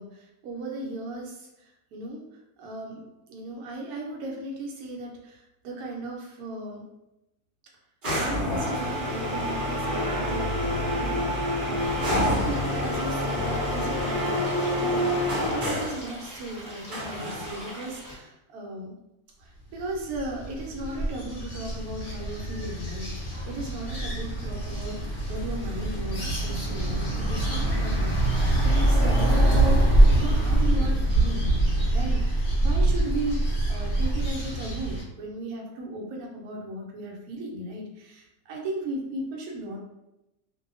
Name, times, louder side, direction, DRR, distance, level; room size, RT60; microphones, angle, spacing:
voice 1, 0.0-6.9 8.2-14.5 14.8-19.0 19.4-39.8, right 1 dB, 70° right, -1 dB, 1.0 m, -36 dB
sound 1, 8.0-16.1 16.9-17.8, left 1 dB, 45° right, 0.7 m, -27 dB
Stream, 11.8-18.1, equal, 5° left, 0.8 m, -43 dB
sound 2, 19.8-35.0, right 1 dB, 40° left, 0.9 m, -24 dB
2.7 x 2.1 x 2.5 m, 0.91 s
omnidirectional pair, 1.7 m